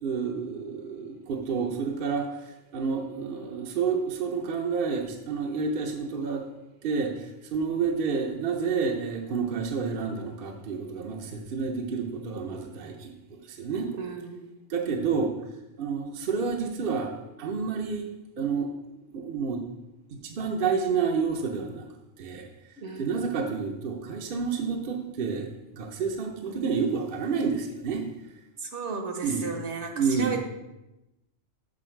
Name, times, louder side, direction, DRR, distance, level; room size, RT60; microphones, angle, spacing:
voice 1, 0.0-6.5 6.8-13.9 14.7-15.3 15.8-18.1 18.4-19.7 20.1-21.9 22.2-22.5 23.0-28.1 29.2-29.4 30.0-30.3, right 5 dB, 50° right, 2 dB, 0.9 m, -29 dB
voice 2, 13.9-14.5 14.9-15.1 22.8-23.2 28.6-30.5, right 5 dB, 65° right, 4 dB, 1.4 m, -34 dB
6.8 x 6.3 x 4.5 m, 0.95 s
omnidirectional pair, 1.3 m